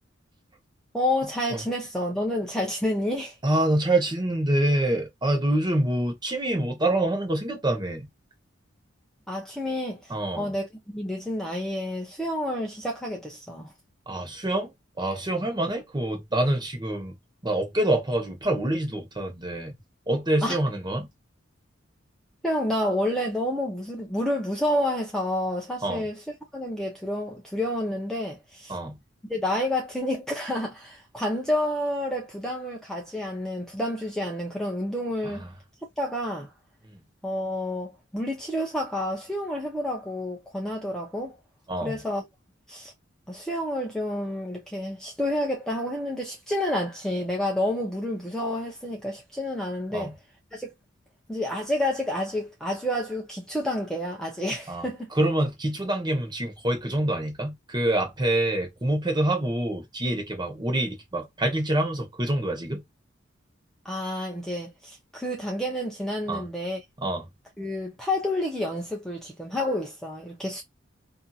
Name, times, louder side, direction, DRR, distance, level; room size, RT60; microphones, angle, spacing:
voice 1, 0.9-3.4 9.3-13.7 20.4-20.6 22.4-26.2 26.5-28.8 29.3-35.5 36.0-36.5 37.2-41.4 41.8-42.3 42.7-42.9 43.3-50.2 50.5-50.7 51.3-55.1 63.8-66.8 67.6-70.6, left 1 dB, 5° left, 0.7 m, -29 dB
voice 2, 3.4-8.0 10.1-10.5 14.1-14.7 15.0-17.1 17.4-19.7 20.1-21.1 25.8-26.0 28.7-29.0 41.7-41.9 49.9-50.1 54.7-54.9 55.2-62.8 66.3-66.4 67.0-67.2, right 1 dB, 20° right, 1.0 m, -26 dB
2.7 x 2.6 x 2.3 m
head